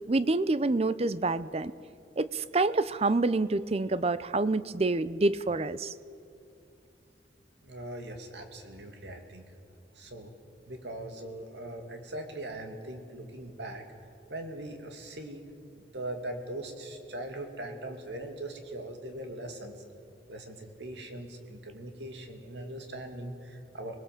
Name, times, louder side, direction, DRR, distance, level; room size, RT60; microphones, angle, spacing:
voice 1, 0.1-1.7 2.2-5.9, right 2 dB, 35° right, 16 dB, 0.5 m, -27 dB
voice 2, 7.6-9.4 9.9-10.3 10.7-13.8 14.3-15.5 15.8-19.8 20.3-24.0, right 1 dB, 80° right, 4 dB, 2.5 m, -40 dB
25.0 x 20.5 x 7.5 m, 2.6 s
head